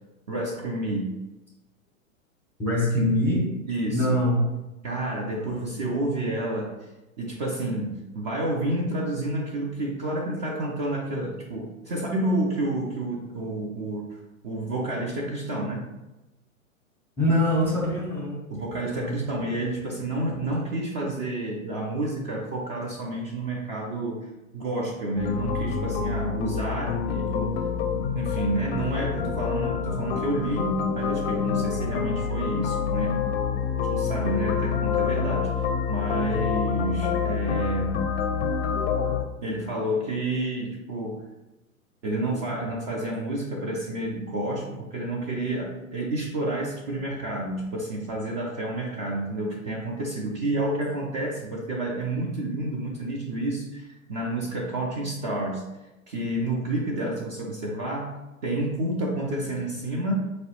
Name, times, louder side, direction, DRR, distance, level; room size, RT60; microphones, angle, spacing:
voice 1, 0.3-1.2 3.7-4.2 4.8-6.9 7.2-15.9 18.5-27.6 27.9-33.2 33.8-38.0 39.4-41.2 42.0-55.6 56.1-58.2 58.4-60.2, right 1 dB, 35° right, -2 dB, 0.4 m, -29 dB
voice 2, 2.6-3.5 3.9-4.5 5.3-5.8 17.2-18.4 18.9-19.2 34.0-34.3, left 1 dB, 5° left, -4 dB, 0.7 m, -24 dB
sound 1, 25.2-39.2, left 7 dB, 50° left, 0.4 m, -27 dB
4.6 x 2.0 x 2.9 m, 1.0 s
hypercardioid pair, 110°, 42 cm